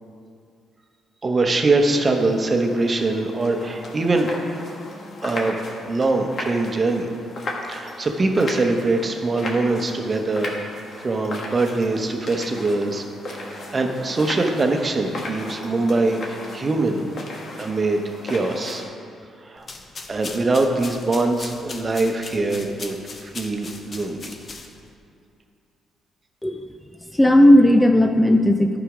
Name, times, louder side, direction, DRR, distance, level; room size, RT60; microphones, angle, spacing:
voice 1, 1.2-4.3 5.2-5.6 5.9-7.1 7.7-10.6 11.0-13.0 13.4-17.0 17.6-18.8 19.4-19.7 20.1-24.3, right 2 dB, 30° right, 4 dB, 0.9 m, -23 dB
sound 1, 1.8-18.8, left 2 dB, 55° left, 1.5 m, -36 dB
sound 2, 19.6-24.9, left 3 dB, 40° left, 0.8 m, -38 dB
voice 2, 27.1-28.8, left 1 dB, 10° left, 6 dB, 0.4 m, -15 dB
11.5 x 5.0 x 5.0 m, 2.4 s
cardioid pair, 90°, 0 cm